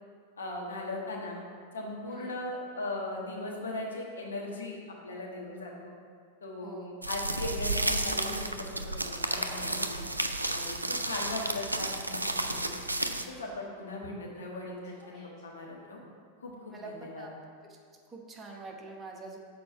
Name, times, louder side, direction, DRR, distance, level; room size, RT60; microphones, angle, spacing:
voice 1, 0.4-1.4 1.7-4.8 5.0-5.9 6.4-10.0 10.5-12.8 13.3-16.0 16.4-17.3, left 2 dB, 70° left, -2 dB, 1.3 m, -38 dB
voice 2, 6.6-7.0 16.7-17.4 17.7-17.8 18.1-19.4, right 3 dB, 20° right, 0 dB, 1.0 m, -45 dB
sound 1, 7.0-13.2, right 2 dB, 85° right, 0.4 m, -32 dB
Yell, 9.2-9.7 10.4-10.9 12.1-13.0 14.8-15.4, left 1 dB, 35° left, 1.9 m, -54 dB
6.7 x 4.6 x 6.8 m, 2.1 s
figure-of-eight pair, 90°, 0 cm